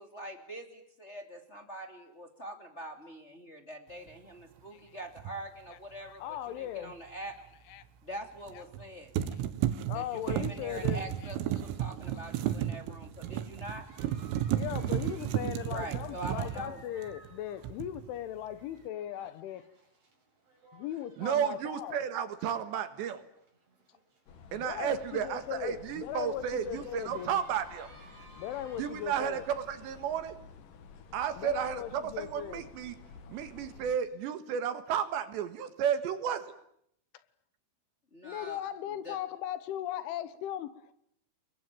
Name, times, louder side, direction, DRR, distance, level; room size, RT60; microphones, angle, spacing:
voice 1, 0.0-6.2 6.5-7.3 8.0-9.1 9.9-13.8 15.6-16.8 38.1-38.6 39.0-39.2, right 1 dB, 20° left, 1.8 m, -44 dB
sound 1, 5.2-5.4 8.5-8.8 9.2-17.3 17.6-18.1, right 11 dB, 90° right, 4.1 m, -33 dB
voice 2, 5.7-7.0 7.7-7.8 8.5-8.6 9.9-11.3 12.5-12.6 14.5-19.6 20.7-22.0 24.6-27.3 28.4-29.4 31.4-32.6 38.2-40.9, left 11 dB, 75° left, 3.5 m, -38 dB
sound 2, 12.8-30.0, right 2 dB, 30° right, 6.0 m, -59 dB
voice 3, 21.2-23.2 24.5-27.9 28.8-30.4 31.1-33.0 33.3-36.5, right 8 dB, 70° right, 3.5 m, -33 dB
sound 3, 24.3-34.0, left 5 dB, 55° left, 2.8 m, -52 dB
29.5 x 22.0 x 9.1 m
omnidirectional pair, 5.8 m